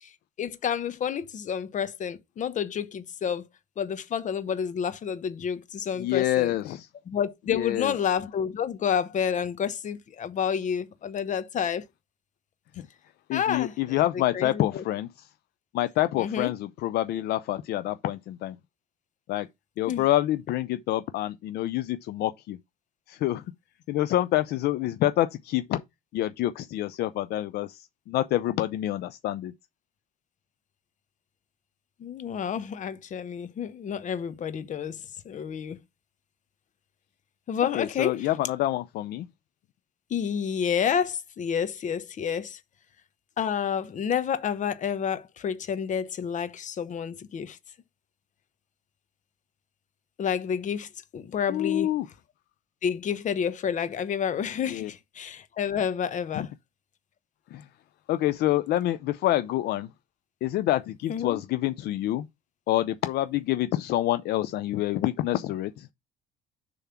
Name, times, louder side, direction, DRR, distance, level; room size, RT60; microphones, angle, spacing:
voice 1, 0.4-3.4 3.8-6.5 7.1-11.8 13.3-14.0 14.3-14.8 16.2-16.5 19.9-20.0 32.0-35.8 37.5-38.3 40.1-42.6 43.4-47.6 50.2-51.9 52.8-56.5 61.1-61.4, left 7 dB, 45° left, 1.1 m, -29 dB
voice 2, 6.0-6.9 7.5-7.9 12.8-12.9 13.3-15.3 15.7-18.6 19.3-19.5 19.8-22.6 23.1-23.4 23.9-25.8 26.1-29.5 37.7-39.3 51.5-52.1 54.7-54.9 56.3-56.5 57.5-57.6 58.1-59.9 60.4-62.3 62.7-65.9, left 14 dB, 70° left, 0.5 m, -27 dB
6.9 x 3.5 x 5.8 m
cardioid pair, 110°, 17 cm